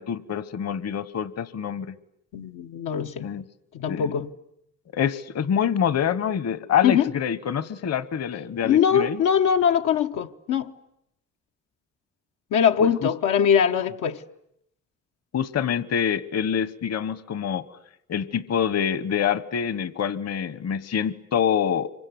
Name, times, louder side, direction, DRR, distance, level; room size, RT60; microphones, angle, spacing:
voice 1, 0.0-1.9 3.2-3.4 3.9-4.1 4.9-9.2 12.8-13.1 15.3-17.7 18.1-21.9, left 8 dB, 55° left, 1.2 m, -26 dB
voice 2, 2.3-3.3 3.7-4.3 6.8-7.1 8.6-10.7 12.5-14.2, left 8 dB, 85° left, 1.1 m, -22 dB
26.0 x 24.0 x 9.4 m
cardioid pair, 90°, 30 cm